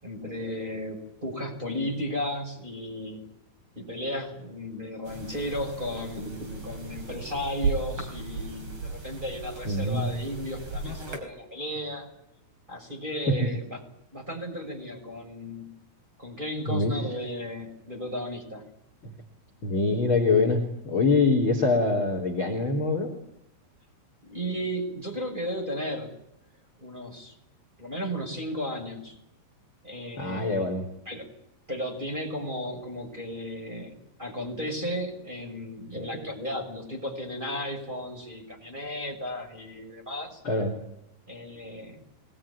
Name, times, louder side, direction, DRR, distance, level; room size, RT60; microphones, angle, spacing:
voice 1, 0.0-3.3 3.8-12.1 12.7-13.8 14.1-15.7 16.2-18.6 24.2-26.1 26.8-27.3 27.8-29.2 29.8-30.6 31.1-31.3 31.7-40.4 41.3-42.0, equal, 10° right, 1 dB, 5.9 m, -34 dB
sound 1, 5.0-11.2, right 4 dB, 25° right, 4.8 m, -35 dB
voice 2, 9.7-10.1 13.3-13.5 16.7-16.9 19.0-19.1 19.6-23.1 30.2-30.9 40.4-40.8, left 3 dB, 25° left, 4 dB, 3.6 m, -24 dB
25.5 x 21.0 x 10.0 m, 0.83 s
omnidirectional pair, 5.9 m